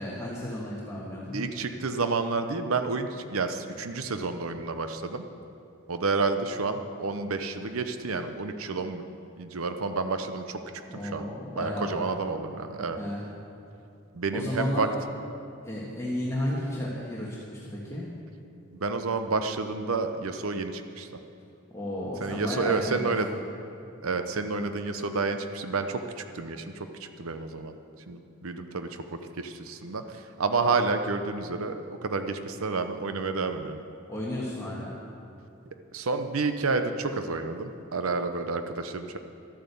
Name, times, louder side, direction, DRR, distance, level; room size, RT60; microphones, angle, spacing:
voice 1, 0.0-1.4 10.9-12.0 13.0-13.2 14.3-14.9 15.6-18.1 21.7-23.3 34.1-35.0, left 1 dB, 15° left, -6 dB, 1.5 m, -33 dB
voice 2, 1.3-5.3 5.9-9.0 9.4-10.6 10.9-11.3 11.6-13.0 14.1-14.9 18.8-21.1 22.2-23.3 24.0-26.0 26.3-27.8 28.1-29.0 29.4-33.8 35.9-39.2, right 4 dB, 85° right, 8 dB, 0.7 m, -30 dB
12.5 x 9.0 x 6.9 m, 2.7 s
head